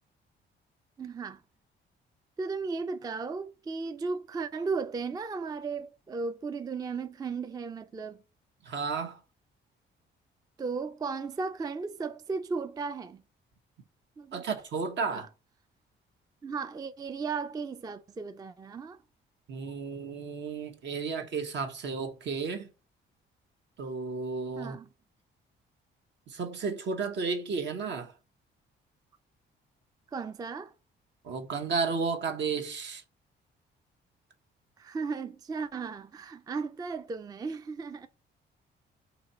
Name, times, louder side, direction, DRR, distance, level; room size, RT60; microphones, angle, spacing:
voice 1, 1.0-1.4 2.4-8.2 10.6-13.2 14.2-14.5 15.1-15.3 16.4-19.0 24.6-24.9 30.1-30.7 34.8-38.1, right 4 dB, 20° right, 0.3 m, -35 dB
voice 2, 8.6-9.2 14.3-15.3 19.5-22.7 23.8-24.8 26.3-28.1 31.2-33.0, right 4 dB, 65° right, 1.0 m, -33 dB
4.0 x 2.9 x 4.2 m
cardioid pair, 90°, 20 cm